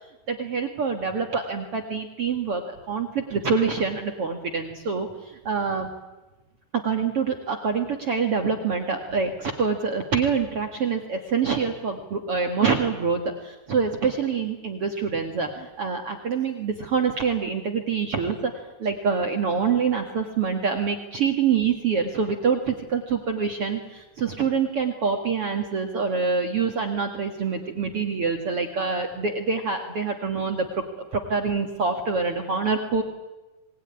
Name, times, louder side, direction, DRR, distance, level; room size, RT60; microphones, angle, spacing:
voice 1, 0.3-5.9 6.7-18.5 18.8-33.0, right 5 dB, 45° right, 3 dB, 2.1 m, -26 dB
26.0 x 20.0 x 9.8 m, 1.1 s
omnidirectional pair, 4.6 m